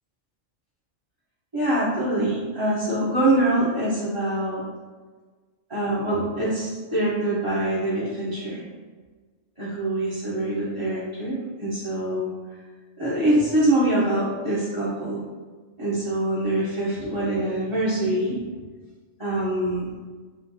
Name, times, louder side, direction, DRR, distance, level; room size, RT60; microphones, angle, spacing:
voice 1, 1.5-4.6 5.7-8.6 9.6-12.3 13.0-15.2 15.8-18.4 19.2-19.9, right 1 dB, 25° right, -10 dB, 0.9 m, -24 dB
4.3 x 2.5 x 4.0 m, 1.4 s
omnidirectional pair, 1.3 m